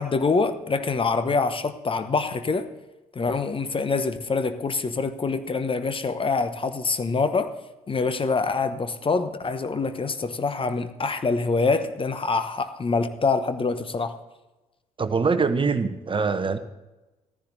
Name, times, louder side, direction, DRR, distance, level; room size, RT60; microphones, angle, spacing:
voice 1, 0.0-2.7 3.1-7.5 7.9-14.1, left 4 dB, 30° left, 10 dB, 1.0 m, -25 dB
voice 2, 15.0-16.6, right 4 dB, 25° right, 11 dB, 0.8 m, -23 dB
15.0 x 14.5 x 2.7 m, 1.1 s
figure-of-eight pair, 50°, 19 cm